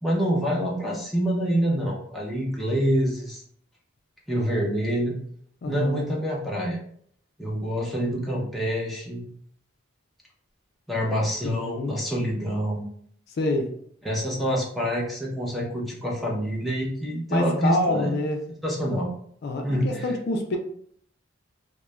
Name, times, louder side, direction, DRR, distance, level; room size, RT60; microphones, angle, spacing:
voice 1, 0.0-3.4 4.3-5.2 5.6-6.8 7.4-9.2 10.9-12.8 14.0-18.1 18.6-19.1 19.6-20.1, equal, ahead, -5 dB, 0.5 m, -26 dB
voice 2, 5.6-6.1 11.4-12.0 13.4-13.7 17.3-18.4 19.4-20.6, left 2 dB, 55° left, 3 dB, 0.4 m, -27 dB
2.3 x 2.1 x 3.0 m, 0.64 s
head